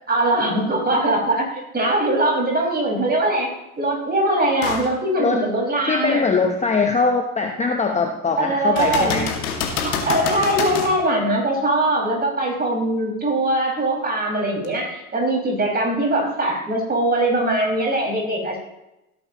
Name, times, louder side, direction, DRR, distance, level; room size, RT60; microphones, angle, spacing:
voice 1, 0.1-6.2 8.4-9.2 9.8-18.6, right 1 dB, 20° right, -1 dB, 5.5 m, -21 dB
sound 1, 4.6-4.9 5.5-5.6 8.8-11.0 14.6-14.7, left 6 dB, 80° left, 2.2 m, -26 dB
voice 2, 5.9-9.3, left 4 dB, 15° left, 4 dB, 1.0 m, -21 dB
17.5 x 10.5 x 3.0 m, 0.91 s
hypercardioid pair, 80°, 43 cm